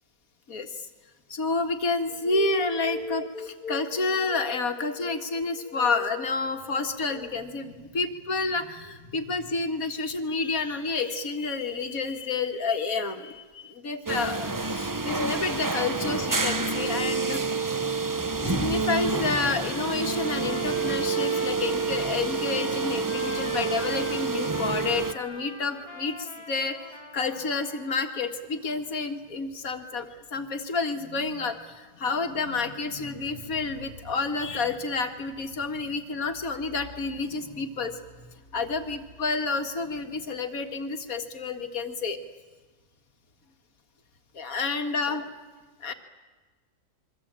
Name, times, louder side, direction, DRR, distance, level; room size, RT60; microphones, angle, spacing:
voice 1, 0.5-0.9 1.3-17.4 18.4-42.2 44.3-45.2 45.8-45.9, left 4 dB, 60° left, 7 dB, 2.2 m, -29 dB
sound 1, 14.1-25.1, right 4 dB, 25° right, 0.4 m, -28 dB
Trumpet, 19.3-28.1, left 3 dB, 15° left, 1.9 m, -43 dB
27.0 x 23.5 x 8.8 m, 1.3 s
omnidirectional pair, 1.7 m